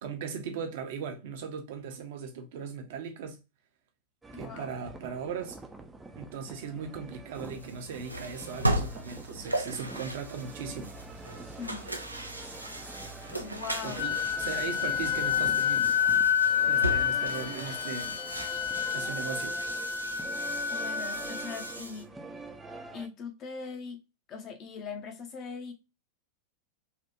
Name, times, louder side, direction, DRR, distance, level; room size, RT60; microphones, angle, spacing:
voice 1, 0.0-3.4 4.3-5.6 6.2-11.0 13.8-15.9 16.7-18.2 18.9-19.6, right 6 dB, 55° right, 0.7 m, -38 dB
sound 1, 4.2-23.1, right 3 dB, 10° right, 0.5 m, -45 dB
voice 2, 4.3-4.7 11.6-11.9 13.4-14.0 20.7-22.1 22.9-24.0 24.3-25.7, left 5 dB, 35° left, 0.8 m, -40 dB
sound 2, 7.3-22.0, right 1 dB, 85° right, 0.4 m, -37 dB
Wind instrument woodwind instrument, 14.0-21.7, left 8 dB, 55° left, 0.4 m, -29 dB
3.3 x 2.4 x 2.8 m
figure-of-eight pair, 90°, 0 cm